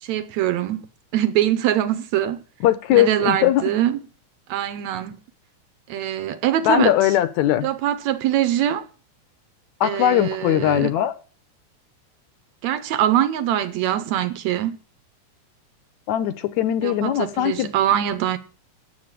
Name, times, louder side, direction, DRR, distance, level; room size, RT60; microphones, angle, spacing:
voice 1, 0.0-0.9 1.1-2.4 2.9-4.0 4.5-5.2 5.9-6.9 7.6-8.9 9.8-10.9 12.6-14.8 16.8-18.4, right 11 dB, 75° right, 2.0 m, -23 dB
voice 2, 2.6-3.6 6.7-7.7 9.8-11.1 16.1-17.7, left 12 dB, 75° left, 2.0 m, -20 dB
9.4 x 7.7 x 9.0 m
omnidirectional pair, 3.5 m